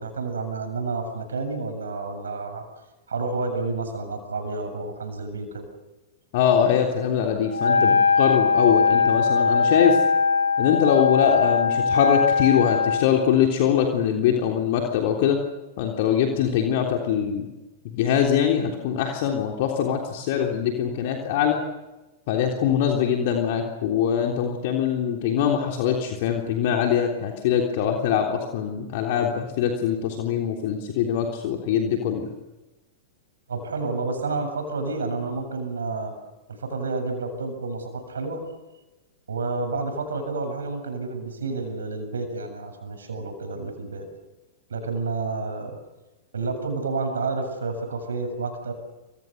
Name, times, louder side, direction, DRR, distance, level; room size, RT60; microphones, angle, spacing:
voice 1, 0.0-2.6 3.1-5.7 33.5-36.1 36.5-38.4 39.3-44.1 44.7-45.8 46.3-48.7, right 3 dB, 70° right, 7 dB, 7.4 m, -30 dB
voice 2, 6.3-10.0 10.6-15.4 15.8-17.5 17.9-21.6 22.3-32.3, left 8 dB, 50° left, 1 dB, 3.4 m, -23 dB
Wind instrument woodwind instrument, 7.5-13.1, left 5 dB, 75° left, 2.5 m, -20 dB
29.0 x 27.0 x 6.7 m, 1.1 s
figure-of-eight pair, 95°, 0 cm